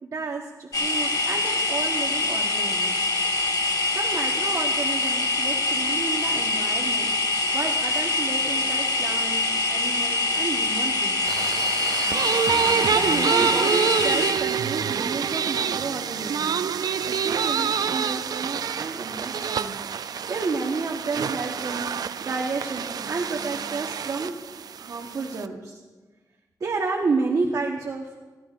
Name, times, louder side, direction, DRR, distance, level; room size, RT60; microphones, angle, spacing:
voice 1, 0.0-3.0 3.9-7.1 7.5-9.4 9.7-11.4 12.4-16.7 17.0-19.8 20.0-24.3 24.8-25.8 26.6-28.1, right 4 dB, 60° right, -1 dB, 1.2 m, -31 dB
sound 1, 0.7-14.3, left 2 dB, 65° left, 1.4 m, -24 dB
sound 2, 11.3-25.5, right 7 dB, 75° right, 0.4 m, -27 dB
20.5 x 15.0 x 2.5 m, 1.3 s
wide cardioid pair, 175°, 7 cm